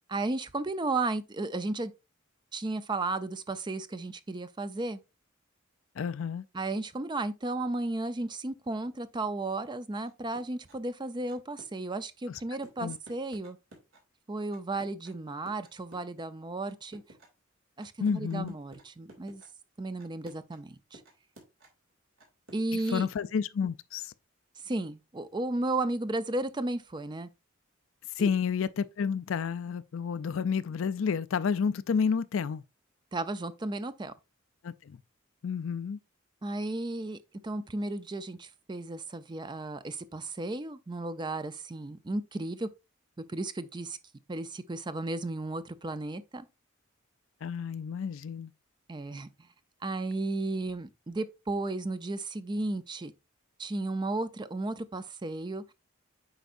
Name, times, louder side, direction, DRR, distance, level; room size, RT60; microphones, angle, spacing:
voice 1, 0.1-1.9 2.5-5.0 6.5-13.6 14.3-17.0 17.8-19.4 19.8-21.0 22.5-23.1 24.6-27.3 28.2-28.3 33.1-34.1 36.4-42.7 43.2-44.0 44.3-46.5 48.9-49.3 49.8-53.1 53.6-55.7, right 2 dB, 20° right, 0.5 m, -34 dB
voice 2, 6.0-6.4 12.3-12.4 12.8-13.0 18.0-18.5 22.7-24.1 28.2-32.6 34.6-35.0 35.4-36.0 47.4-48.5, left 6 dB, 70° left, 0.4 m, -30 dB
sound 1, 9.9-10.8 11.3-11.9 12.3-14.0 14.5-16.2 16.7-17.3 17.8-19.5 20.0-20.6 20.9-21.9 22.2-23.0, right 2 dB, 70° right, 2.5 m, -54 dB
8.0 x 5.1 x 2.5 m
head